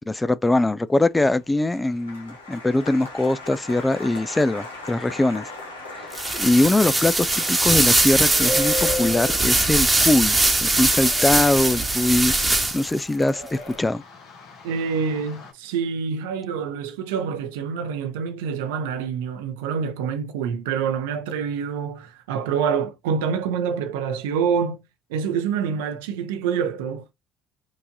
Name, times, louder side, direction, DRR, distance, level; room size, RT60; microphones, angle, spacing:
voice 1, 0.1-5.5 5.9-6.1 6.3-14.0, left 2 dB, 15° left, 0.3 m, -22 dB
Applause, 1.1-11.5 11.7-12.4, left 2 dB, 85° left, 1.2 m, -40 dB
sound 1, 6.1-13.0, right 2 dB, 15° right, 1.1 m, -21 dB
sound 2, 8.3-9.6 10.7-15.5, left 2 dB, 60° left, 1.4 m, -34 dB
voice 2, 14.6-24.8 25.1-27.1, right 6 dB, 75° right, 0.7 m, -26 dB
4.6 x 2.6 x 2.6 m
figure-of-eight pair, 55°, 0 cm